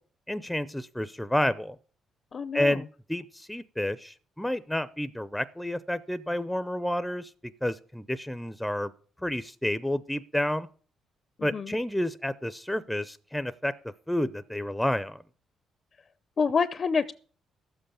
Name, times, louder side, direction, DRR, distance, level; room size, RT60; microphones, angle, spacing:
voice 1, 0.3-1.8 2.5-2.8 3.1-7.3 7.6-8.9 9.2-10.7 11.4-13.7 14.1-15.2, left 1 dB, 5° left, 14 dB, 0.6 m, -30 dB
voice 2, 2.3-2.8 11.4-11.8 16.4-17.1, left 5 dB, 45° left, 15 dB, 0.6 m, -27 dB
12.0 x 7.9 x 6.9 m, 0.43 s
cardioid pair, 90°, 0 cm